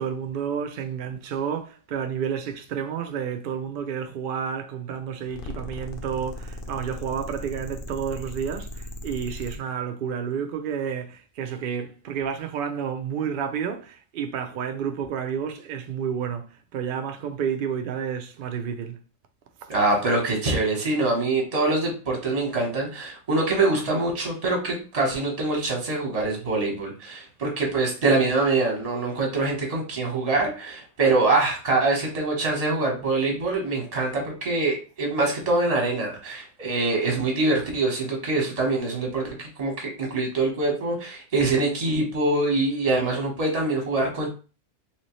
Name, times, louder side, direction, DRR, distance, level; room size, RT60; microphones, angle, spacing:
voice 1, 0.0-19.0, right 7 dB, 85° right, 0.4 m, -30 dB
sound 1, 5.2-9.6, left 1 dB, 60° left, 0.6 m, -37 dB
voice 2, 19.7-44.3, right 2 dB, 30° right, 1.0 m, -24 dB
3.3 x 2.7 x 3.0 m
omnidirectional pair, 1.5 m